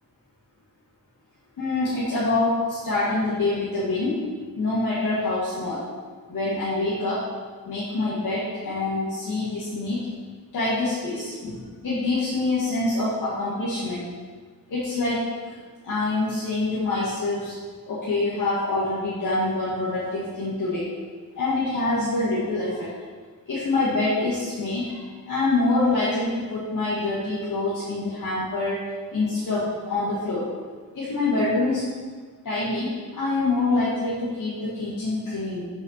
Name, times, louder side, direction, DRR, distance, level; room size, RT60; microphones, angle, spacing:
voice 1, 1.6-4.2 4.6-5.8 6.3-7.2 7.7-10.1 10.5-14.0 14.7-15.6 15.8-17.5 17.9-20.9 21.4-22.9 23.5-28.8 29.1-30.5 30.9-31.8 32.4-35.6, left 2 dB, 60° left, -10 dB, 2.2 m, -25 dB
6.0 x 5.7 x 6.7 m, 1.5 s
wide cardioid pair, 165°, 34 cm